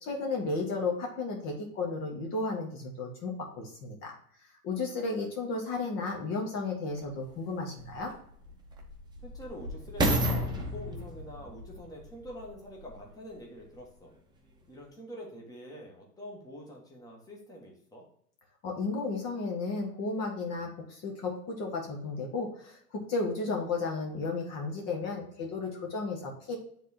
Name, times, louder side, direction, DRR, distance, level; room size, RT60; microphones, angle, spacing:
voice 1, 0.0-4.1 4.6-8.1 18.6-26.6, left 3 dB, 35° left, 1 dB, 1.5 m, -33 dB
sound 1, 7.0-7.1 7.8-13.1 13.7-13.8, equal, 10° right, 1.1 m, -32 dB
voice 2, 9.2-14.1 14.7-18.0, equal, 10° left, -2 dB, 1.5 m, -45 dB
9.8 x 3.7 x 2.9 m, 0.63 s
figure-of-eight pair, 100°, 47 cm